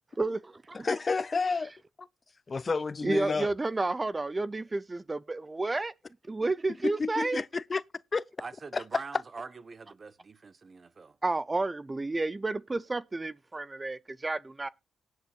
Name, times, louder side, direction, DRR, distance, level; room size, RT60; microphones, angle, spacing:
voice 1, 0.2-0.9 3.0-5.9 6.3-7.4 11.2-14.7, right 2 dB, 30° right, 0.6 m, -31 dB
voice 2, 0.8-1.7 2.0-2.1 2.5-3.5 6.8-7.8 8.1-8.2 8.7-8.8, left 4 dB, 40° left, 0.6 m, -30 dB
voice 3, 8.4-11.2, right 4 dB, 45° right, 1.1 m, -44 dB
18.5 x 8.1 x 2.4 m
hypercardioid pair, 45°, 0 cm